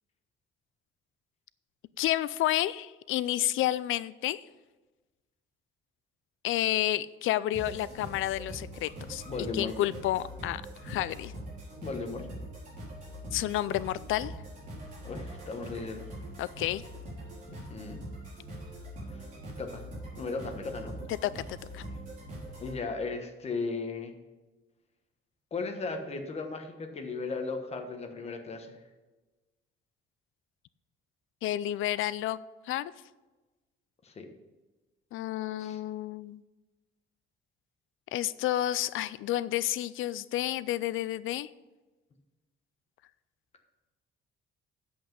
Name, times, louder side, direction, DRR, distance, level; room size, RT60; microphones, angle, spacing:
voice 1, 2.0-4.4 6.4-9.2 9.5-11.3 13.3-14.3 16.4-16.8 21.2-21.8 31.4-32.4 32.7-32.9 35.1-36.4 38.1-41.5, left 14 dB, 70° left, 17 dB, 0.4 m, -30 dB
sound 1, 7.5-22.8, equal, 35° right, 3.9 m, -43 dB
voice 2, 9.2-9.7 11.8-12.3 15.0-16.0 17.5-18.0 19.1-19.2 19.6-19.9 20.1-20.9 22.6-24.1 25.5-28.8 34.0-34.3 35.6-35.8, left 3 dB, 30° left, 5 dB, 1.1 m, -36 dB
8.6 x 7.8 x 5.3 m, 1.2 s
cardioid pair, 175°, 21 cm